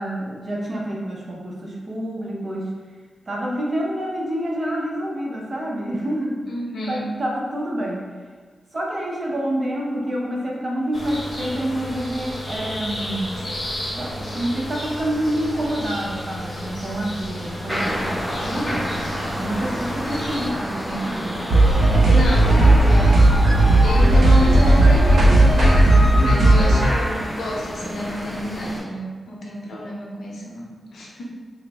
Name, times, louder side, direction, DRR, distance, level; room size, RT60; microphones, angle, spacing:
voice 1, 0.0-2.7 3.3-6.5 6.9-8.0 8.7-13.5 13.9-18.9 19.4-21.5 23.9-24.1 26.2-26.6, right 1 dB, 35° right, -3 dB, 0.6 m, -27 dB
voice 2, 6.5-7.1 22.1-23.3 23.8-31.2, equal, 80° left, -3 dB, 0.7 m, -29 dB
sound 1, 10.9-20.5, equal, 25° left, 1.0 m, -32 dB
sound 2, 17.7-28.8, equal, 5° right, 1.4 m, -30 dB
sound 3, 21.5-26.9, right 1 dB, 70° right, 0.8 m, -14 dB
3.8 x 2.0 x 3.3 m, 1.5 s
wide cardioid pair, 130°, 0 cm